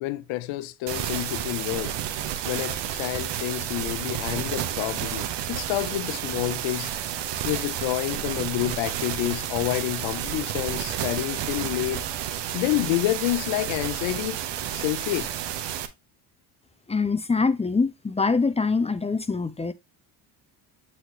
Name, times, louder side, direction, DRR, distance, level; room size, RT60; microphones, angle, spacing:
voice 1, 0.0-1.9 2.4-6.9 7.4-12.0 12.5-14.4 14.7-15.3, left 16 dB, 80° left, 0.8 m, -28 dB
sound 1, 0.9-15.9, right 10 dB, 65° right, 1.1 m, -31 dB
voice 2, 16.9-19.7, left 4 dB, 15° left, 0.6 m, -24 dB
7.8 x 4.2 x 2.9 m
supercardioid pair, 80°, 46 cm